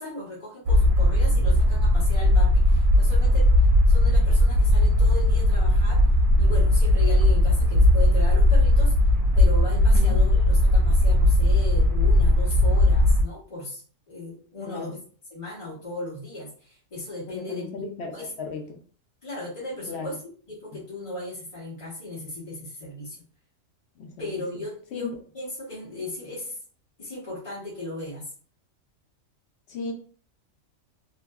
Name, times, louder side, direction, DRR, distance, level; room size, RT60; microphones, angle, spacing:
voice 1, 0.0-6.1 6.4-8.9 9.3-15.0 15.3-17.7 18.1-18.3 19.2-20.2 20.5-23.2 24.2-26.6 27.0-28.3, left 2 dB, 30° left, -8 dB, 0.7 m, -36 dB
sound 1, 0.7-13.2, left 1 dB, 85° right, 1.0 m, -18 dB
voice 2, 9.8-10.2 14.6-15.0 17.3-18.8 19.9-20.1 24.0-24.4 24.9-25.1 29.7-29.9, left 4 dB, 65° left, 3 dB, 0.7 m, -36 dB
2.6 x 2.1 x 2.3 m, 0.43 s
omnidirectional pair, 1.4 m